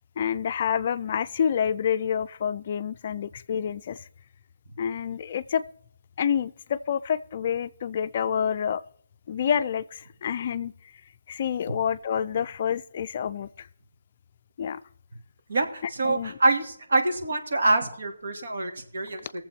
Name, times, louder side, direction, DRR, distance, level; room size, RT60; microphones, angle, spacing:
voice 1, 0.2-4.1 4.8-5.6 6.2-8.8 9.3-10.9 11.3-13.7 14.6-14.8 16.0-16.4 19.2-19.3, left 8 dB, 35° left, 0.4 m, -28 dB
voice 2, 15.5-19.2, right 2 dB, 65° right, 2.6 m, -25 dB
19.5 x 7.5 x 4.4 m
hypercardioid pair, 165°, 0 cm